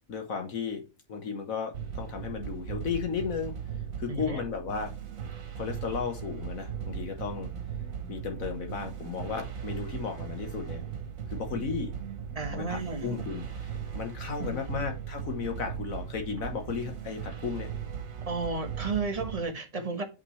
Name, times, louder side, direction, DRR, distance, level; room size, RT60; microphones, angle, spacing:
voice 1, 0.1-0.8 1.1-3.5 4.0-4.9 5.6-7.5 8.1-10.8 11.3-11.9 12.5-17.7, left 6 dB, 80° left, 1.7 m, -34 dB
sound 1, 1.7-19.4, right 8 dB, 75° right, 1.5 m, -38 dB
voice 2, 4.1-4.4 12.3-13.3 14.4-14.8 18.3-20.0, right 3 dB, 30° right, 1.3 m, -33 dB
8.2 x 5.7 x 3.2 m
omnidirectional pair, 1.4 m